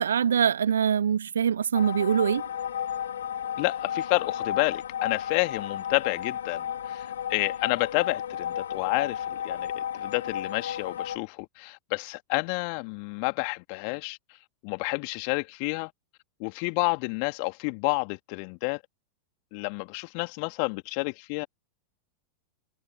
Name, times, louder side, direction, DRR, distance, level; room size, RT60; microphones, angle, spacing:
voice 1, 0.0-2.4, right 8 dB, 65° right, 1.9 m, -23 dB
sound 1, 1.7-11.2, left 9 dB, 65° left, 3.5 m, -33 dB
voice 2, 3.6-14.2 14.6-15.9 16.4-18.8 19.5-21.5, left 40 dB or more, 45° left, 2.9 m, -29 dB
figure-of-eight pair, 90°, 0 cm